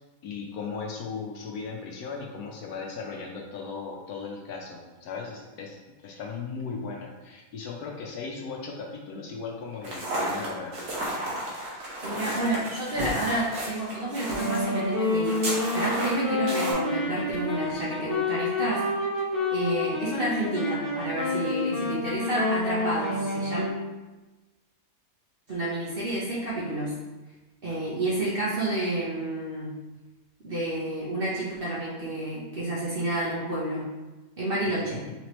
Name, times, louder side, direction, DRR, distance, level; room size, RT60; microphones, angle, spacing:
voice 1, 0.2-5.8 6.0-10.8 34.8-35.1, left 5 dB, 70° left, 0 dB, 1.1 m, -37 dB
sound 1, 9.8-16.7, right 1 dB, 70° right, 1.5 m, -32 dB
voice 2, 12.0-18.8 19.5-23.7 25.5-26.9 27.6-29.7 30.4-33.9 34.4-35.0, right 1 dB, 45° right, -8 dB, 0.8 m, -30 dB
Wind instrument woodwind instrument, 14.2-23.9, left 2 dB, 45° left, 1.3 m, -29 dB
4.1 x 3.0 x 3.0 m, 1.1 s
omnidirectional pair, 1.8 m